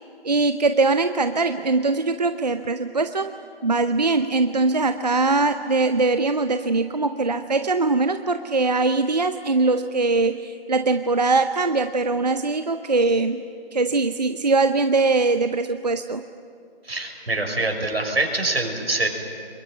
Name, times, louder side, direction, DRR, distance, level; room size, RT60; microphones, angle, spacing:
voice 1, 0.2-3.3 3.6-13.4 13.7-16.2, right 3 dB, 40° right, 9 dB, 0.7 m, -21 dB
voice 2, 16.8-19.1, right 2 dB, 80° right, 3 dB, 6.0 m, -24 dB
24.0 x 21.5 x 9.4 m, 2.3 s
figure-of-eight pair, 170°, 31 cm